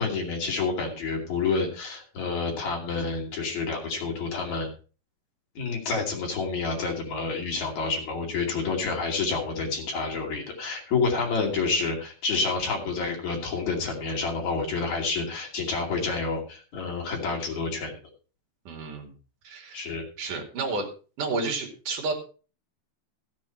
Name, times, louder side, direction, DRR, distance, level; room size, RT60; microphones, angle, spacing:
voice 1, 0.0-4.7 5.6-17.9 19.7-20.0, left 4 dB, 50° left, 0 dB, 3.8 m, -29 dB
voice 2, 18.7-19.1 19.4-19.8 20.2-20.9 21.2-22.1, right 3 dB, 55° right, 1 dB, 3.8 m, -31 dB
15.5 x 7.6 x 4.5 m, 0.36 s
omnidirectional pair, 4.7 m